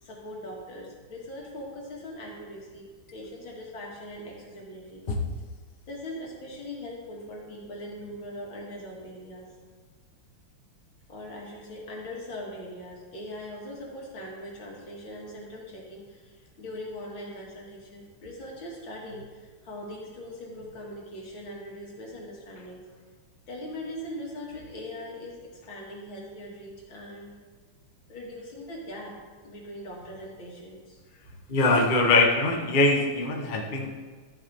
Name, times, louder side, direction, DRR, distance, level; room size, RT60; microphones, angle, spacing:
voice 1, 0.0-5.0 5.9-9.5 11.1-23.0 23.5-27.3 28.1-29.2 29.4-31.4, left 1 dB, 70° left, -2 dB, 2.6 m, -41 dB
voice 2, 31.5-34.0, left 2 dB, 35° left, 0 dB, 0.8 m, -22 dB
13.0 x 7.1 x 3.5 m, 1.5 s
omnidirectional pair, 2.3 m